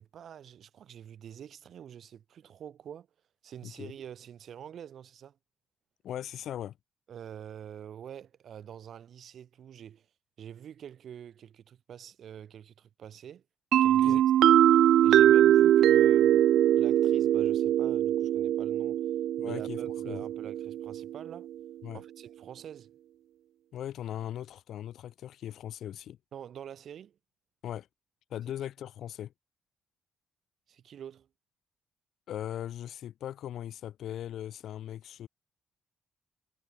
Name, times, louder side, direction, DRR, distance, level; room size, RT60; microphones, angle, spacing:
voice 1, 0.0-3.1 3.4-5.4 7.1-10.1 10.4-13.4 13.7-14.6 15.0-16.5 16.8-19.1 19.4-21.5 21.9-22.9 26.3-27.2 30.7-31.3, right 9 dB, 55° right, 6.0 m, -46 dB
voice 2, 6.0-6.8 13.9-14.2 19.4-19.8 20.0-20.2 21.8-22.0 23.7-26.2 27.6-27.9 28.3-29.3 32.3-35.3, left 11 dB, 65° left, 5.5 m, -39 dB
sound 1, 13.7-21.4, right 12 dB, 70° right, 0.3 m, -22 dB
cardioid pair, 145°, 0 cm